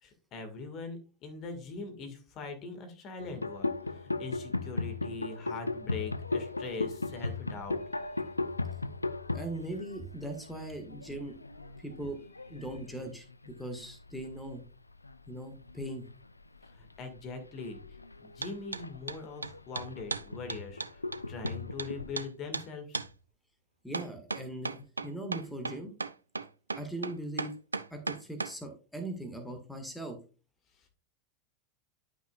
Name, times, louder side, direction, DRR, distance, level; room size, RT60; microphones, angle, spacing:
voice 1, 0.0-8.3 16.7-17.8 18.2-20.8 21.3-23.0, left 4 dB, 40° left, 6 dB, 1.8 m, -42 dB
sound 1, 3.2-14.6 14.9-15.3 15.6-22.2, left 3 dB, 85° left, 0.3 m, -37 dB
voice 2, 9.3-11.3 11.8-12.2 12.5-14.6 15.3-16.0 23.8-25.9 26.7-27.5 27.9-30.2, right 1 dB, 5° left, 5 dB, 1.7 m, -40 dB
sound 2, 18.4-18.8 19.1-21.9 22.2-22.3 22.5-22.7 22.9-23.1 23.9-28.5, right 3 dB, 80° right, 0.4 m, -35 dB
11.0 x 6.0 x 2.4 m, 0.34 s
figure-of-eight pair, 85°, 0 cm